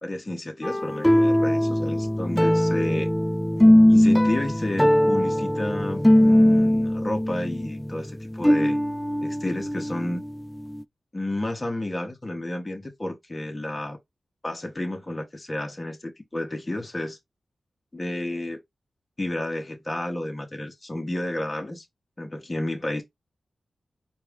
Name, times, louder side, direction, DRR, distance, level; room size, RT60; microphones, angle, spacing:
voice 1, 0.0-3.1 3.9-8.8 9.2-10.2 11.1-14.0 14.4-17.2 17.9-18.6 19.2-21.8 22.2-23.0, left 1 dB, 30° left, 1.3 m, -31 dB
sound 1, 0.6-10.3 10.7-10.8, left 1 dB, 5° left, 0.3 m, -20 dB
4.5 x 2.7 x 3.6 m
cardioid pair, 55°, 0 cm